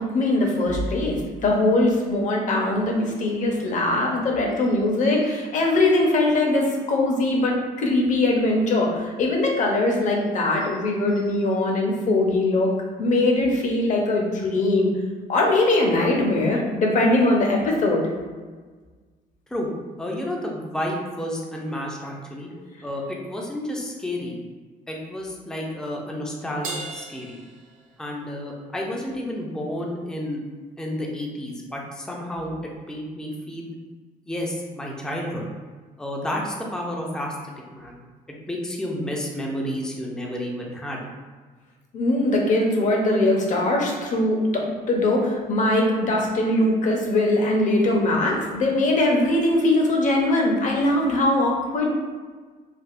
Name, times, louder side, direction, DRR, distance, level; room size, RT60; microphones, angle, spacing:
voice 1, 0.0-12.7 13.0-14.9 15.3-18.0 22.5-22.6 41.9-51.9, left 2 dB, 45° left, 0 dB, 0.7 m, -21 dB
voice 2, 20.0-22.5 22.8-24.3 24.9-26.7 26.9-27.4 28.0-30.4 30.8-32.5 32.9-33.7 34.3-35.5 36.0-37.3 37.7-38.0 38.5-41.0, left 1 dB, 5° left, -1 dB, 0.4 m, -30 dB
Crash cymbal, 26.6-28.4, right 2 dB, 50° right, 0.6 m, -37 dB
3.4 x 2.4 x 2.4 m, 1.4 s
cardioid pair, 110°, 17 cm